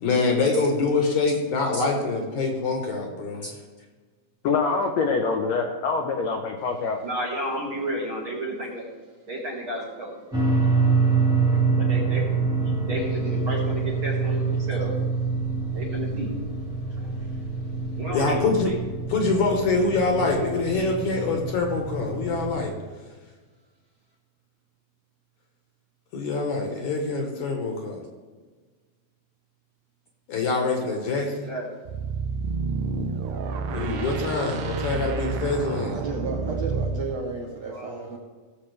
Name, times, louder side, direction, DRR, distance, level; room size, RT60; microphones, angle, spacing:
voice 1, 0.0-3.5 18.1-18.7 19.1-22.7 26.1-28.0 30.3-31.5 33.7-36.0, left 3 dB, 60° left, 2 dB, 2.4 m, -25 dB
voice 2, 4.4-7.0, left 4 dB, 80° left, 2 dB, 1.5 m, -25 dB
voice 3, 7.0-8.9 9.3-10.4 11.5-15.0 15.7-16.3 16.9-17.3 18.0-18.7 31.4-31.7 37.7-38.2, right 1 dB, 45° right, -3 dB, 2.0 m, -32 dB
sound 1, 10.3-22.6, right 4 dB, 5° right, 0.8 m, -26 dB
sound 2, 31.9-37.1, right 4 dB, 85° right, 1.5 m, -29 dB
voice 4, 35.9-38.2, right 4 dB, 70° right, 0 dB, 1.6 m, -33 dB
18.0 x 7.3 x 3.4 m, 1.4 s
omnidirectional pair, 4.3 m